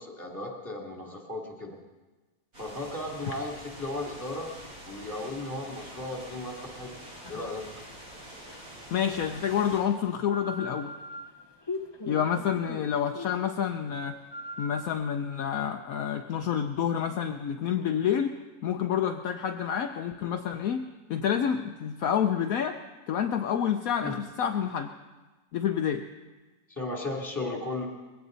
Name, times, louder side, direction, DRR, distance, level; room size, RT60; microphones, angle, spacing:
voice 1, 0.0-1.8 2.6-4.5 4.8-6.9 7.3-7.6 24.0-24.1 26.7-27.9, left 2 dB, 10° left, -1 dB, 2.8 m, -35 dB
sound 1, 2.5-9.8, right 1 dB, 60° right, 7.3 m, -46 dB
sound 2, 5.3-14.9, left 2 dB, 30° left, 0.5 m, -43 dB
voice 2, 8.9-11.0 12.1-14.2 14.6-18.4 18.6-22.8 23.1-24.9 25.5-26.0, left 8 dB, 65° left, 5 dB, 1.1 m, -28 dB
21.5 x 17.0 x 4.0 m, 1.2 s
omnidirectional pair, 1.7 m